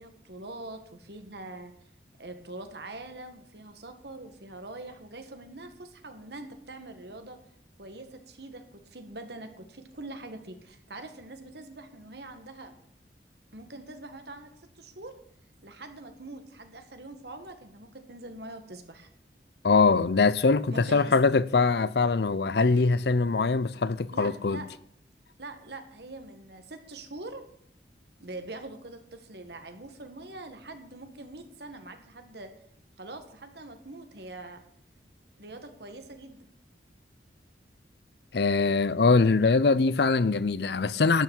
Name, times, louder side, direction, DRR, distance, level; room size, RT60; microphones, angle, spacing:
voice 1, 0.0-1.7 2.2-7.4 7.8-12.7 13.5-14.5 14.8-15.2 15.6-19.1 20.7-21.1 24.1-24.7 25.4-27.5 28.2-32.5 33.0-34.6 35.4-36.4, right 2 dB, 65° right, 1.8 m, -43 dB
voice 2, 19.6-24.6 38.3-41.2, left 4 dB, 65° left, 0.6 m, -23 dB
12.0 x 6.9 x 8.9 m
head